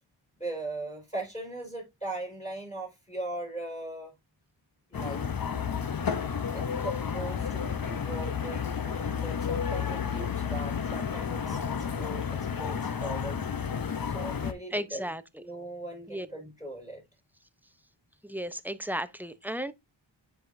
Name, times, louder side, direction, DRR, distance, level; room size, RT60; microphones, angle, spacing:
voice 1, 0.4-4.1 4.9-5.3 6.5-11.6 12.0-13.4 14.1-15.1 15.4-17.0, right 1 dB, 15° left, 5.2 m, -39 dB
sound 1, 4.9-14.5, left 7 dB, 45° left, 0.9 m, -31 dB
voice 2, 14.7-15.2 16.1-16.3 18.2-19.7, equal, 5° right, 0.7 m, -34 dB
9.1 x 4.9 x 2.6 m
cardioid pair, 45°, 47 cm